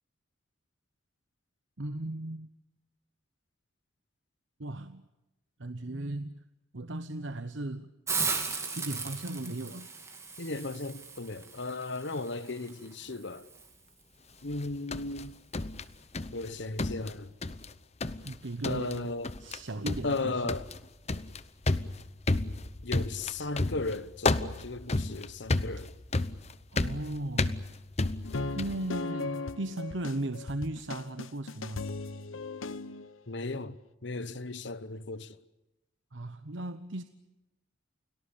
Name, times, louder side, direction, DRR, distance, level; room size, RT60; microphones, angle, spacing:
voice 1, 1.8-2.5 4.6-5.1 5.6-6.4 6.7-7.9 8.7-9.9 18.2-19.1 19.4-20.5 26.7-27.6 28.5-31.8 36.1-37.0, right 1 dB, 70° right, 1.1 m, -36 dB
Hiss, 8.1-13.7, right 4 dB, 15° right, 2.9 m, -37 dB
voice 2, 10.4-13.5 14.4-15.4 16.3-17.3 18.6-19.3 20.0-20.7 22.8-25.9 33.3-35.4, left 3 dB, 60° left, 1.1 m, -36 dB
sound 1, 14.5-16.5 16.8-17.7 18.0-18.4 18.6-19.0 19.2-19.6 19.9-28.9, left 2 dB, 35° left, 0.9 m, -32 dB
sound 2, 28.2-33.2, left 3 dB, 90° left, 0.9 m, -37 dB
29.5 x 19.0 x 8.6 m
head